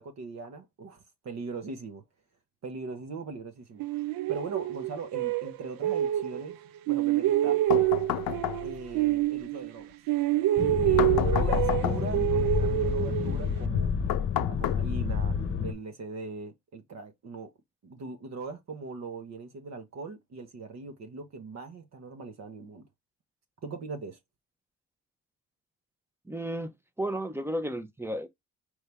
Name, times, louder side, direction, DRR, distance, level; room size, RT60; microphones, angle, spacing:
voice 1, 0.0-2.0 2.6-3.8 4.3-6.6 6.9-7.6 8.6-10.0 10.8-14.2 14.4-15.3 15.6-17.5 17.8-22.9 23.6-24.2, right 4 dB, 50° right, 0.9 m, -40 dB
sound 1, 3.8-6.6 6.9-9.8 10.1-13.6, right 14 dB, 70° right, 0.6 m, -27 dB
sound 2, 7.7-9.0 11.0-12.3 14.1-15.3, left 13 dB, 75° left, 0.6 m, -31 dB
sound 3, 10.6-15.7, left 6 dB, 35° left, 0.9 m, -29 dB
voice 2, 26.3-26.7 27.0-28.3, right 1 dB, 5° right, 0.6 m, -33 dB
4.7 x 2.7 x 3.4 m
cardioid pair, 85°, 35 cm